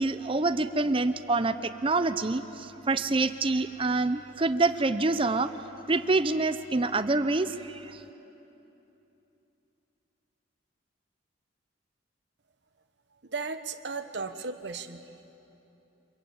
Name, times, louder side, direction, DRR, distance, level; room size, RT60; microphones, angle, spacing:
voice 1, 0.0-5.5 5.9-8.0, right 3 dB, 25° right, 12 dB, 0.6 m, -26 dB
voice 2, 13.3-15.0, right 4 dB, 60° right, 9 dB, 1.1 m, -35 dB
25.5 x 22.0 x 8.9 m, 3.0 s
head